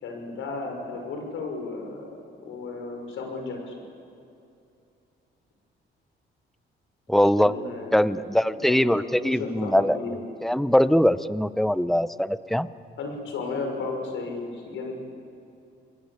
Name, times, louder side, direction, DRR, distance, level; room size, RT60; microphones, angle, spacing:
voice 1, 0.0-2.1 2.4-3.7 7.4-8.2 8.5-10.2 13.0-14.9, left 3 dB, 80° left, 4 dB, 5.8 m, -34 dB
voice 2, 7.1-7.5 7.9-10.0 10.4-12.7, equal, ahead, 14 dB, 0.8 m, -22 dB
27.5 x 21.5 x 8.7 m, 2.6 s
cardioid pair, 90°, 20 cm